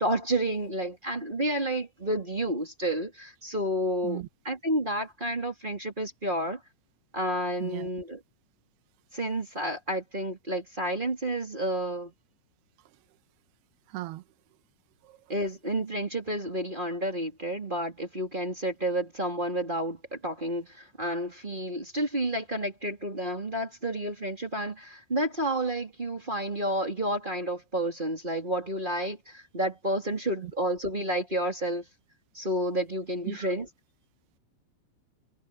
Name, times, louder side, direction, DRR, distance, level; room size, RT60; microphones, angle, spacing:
voice 1, 0.0-6.6 7.1-8.2 9.1-12.1 15.3-31.9 32.3-33.7, right 1 dB, 15° right, 2.0 m, -30 dB
voice 2, 13.9-14.2 15.0-15.2 30.4-30.5 33.2-33.5, right 18 dB, 70° right, 2.9 m, -37 dB
omnidirectional pair, 5.5 m